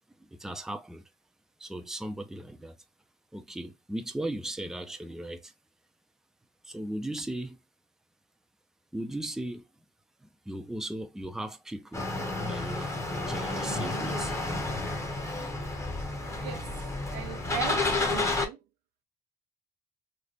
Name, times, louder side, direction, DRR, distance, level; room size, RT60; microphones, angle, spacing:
voice 1, 0.2-1.0 1.6-2.8 3.3-5.5 6.6-7.6 8.9-9.7 10.2-12.1 12.4-14.3, right 1 dB, 5° right, 0.5 m, -37 dB
sound 1, 11.9-18.5, left 2 dB, 15° left, 0.9 m, -31 dB
voice 2, 17.1-18.6, right 9 dB, 85° right, 0.6 m, -38 dB
3.2 x 2.1 x 3.7 m
cardioid pair, 110°, 17 cm